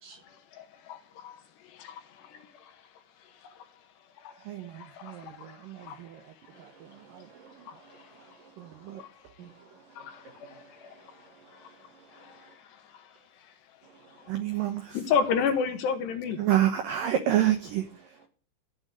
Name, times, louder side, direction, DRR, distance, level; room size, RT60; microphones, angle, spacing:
voice 1, 0.3-2.8 3.4-3.7 4.2-6.1 7.7-8.4 9.0-9.1 9.9-11.8 12.1-13.1 14.9-16.4, left 6 dB, 70° left, 3.3 m, -34 dB
voice 2, 4.4-7.7 8.6-9.3 14.3-15.1 16.4-18.3, right 12 dB, 75° right, 2.0 m, -30 dB
voice 3, 6.5-9.0 9.4-12.5 13.8-14.3, right 5 dB, 55° right, 2.9 m, -56 dB
15.0 x 7.9 x 9.2 m
omnidirectional pair, 5.5 m